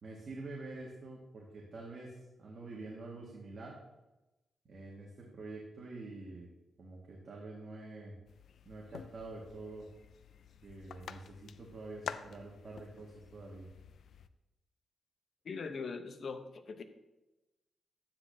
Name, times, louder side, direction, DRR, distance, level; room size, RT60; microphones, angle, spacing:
voice 1, 0.0-3.8 4.7-6.5 6.8-8.2 8.6-9.9 10.6-13.7, right 2 dB, 50° right, -3 dB, 1.9 m, -47 dB
sound 1, 8.3-14.3, left 7 dB, 75° left, 0.4 m, -49 dB
voice 2, 15.4-16.8, left 4 dB, 55° left, 8 dB, 0.9 m, -41 dB
12.0 x 9.6 x 2.8 m, 1.0 s
cardioid pair, 115°, 0 cm